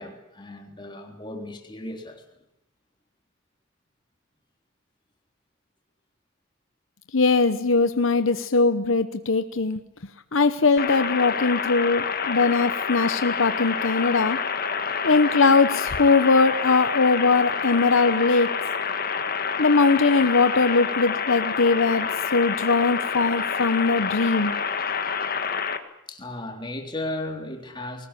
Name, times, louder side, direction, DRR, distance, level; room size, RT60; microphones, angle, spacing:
voice 1, 0.0-2.2 26.1-28.1, left 1 dB, 20° left, 3 dB, 3.5 m, -35 dB
voice 2, 7.1-9.8 10.3-14.4 15.0-18.6 19.6-24.5, left 4 dB, 70° left, 11 dB, 0.9 m, -21 dB
sound 1, 10.8-25.8, left 6 dB, 45° left, 1.8 m, -28 dB
21.0 x 19.0 x 10.0 m, 0.81 s
head